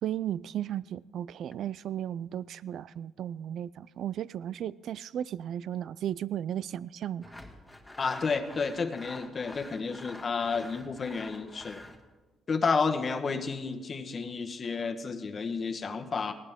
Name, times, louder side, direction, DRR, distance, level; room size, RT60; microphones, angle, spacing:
voice 1, 0.0-7.2, right 10 dB, 70° right, 0.4 m, -35 dB
Sawing, 7.2-12.0, left 1 dB, 5° left, 1.8 m, -47 dB
voice 2, 8.0-11.8 12.5-16.3, left 5 dB, 40° left, 1.2 m, -31 dB
19.0 x 17.0 x 3.6 m
cardioid pair, 90°, 0 cm